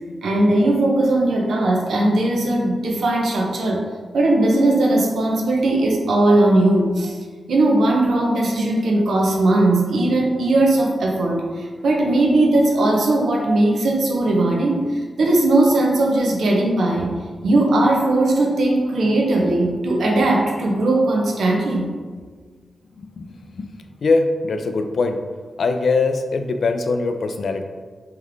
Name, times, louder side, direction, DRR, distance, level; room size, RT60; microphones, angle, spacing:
voice 1, 0.2-3.8 4.1-7.2 7.5-17.1 17.4-21.9, right 2 dB, 90° right, -1 dB, 0.7 m, -18 dB
voice 2, 23.0-23.7 24.0-25.2 25.6-27.7, left 3 dB, 60° left, 7 dB, 0.3 m, -22 dB
3.7 x 3.1 x 3.4 m, 1.5 s
wide cardioid pair, 155°, 0 cm